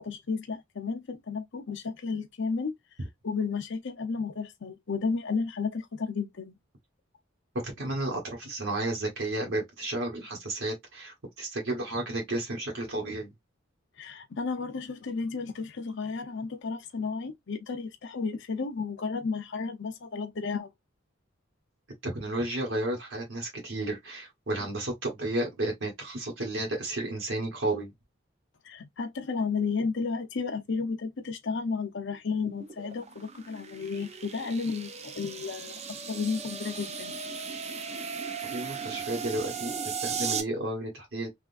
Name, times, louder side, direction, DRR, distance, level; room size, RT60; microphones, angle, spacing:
voice 1, 0.0-2.7 3.2-6.5 14.0-20.7 28.6-37.1, left 4 dB, 65° left, 0.6 m, -33 dB
voice 2, 7.6-13.3 22.0-27.9 38.5-41.3, right 1 dB, 70° right, 1.2 m, -32 dB
sound 1, 32.4-40.4, right 6 dB, 35° right, 0.5 m, -37 dB
3.5 x 2.4 x 2.5 m
head